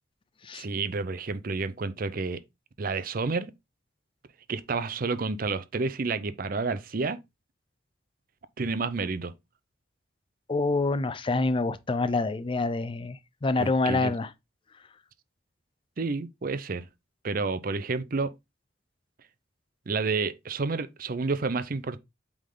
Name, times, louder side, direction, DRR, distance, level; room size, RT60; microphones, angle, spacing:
voice 1, 0.5-2.4 2.8-3.5 4.5-7.2 8.6-9.3 13.6-14.1 16.0-16.9 17.2-18.3 19.9-22.0, right 4 dB, 45° right, 0.5 m, -30 dB
voice 2, 10.5-14.3, left 3 dB, 25° left, 0.4 m, -27 dB
8.4 x 3.6 x 3.7 m
head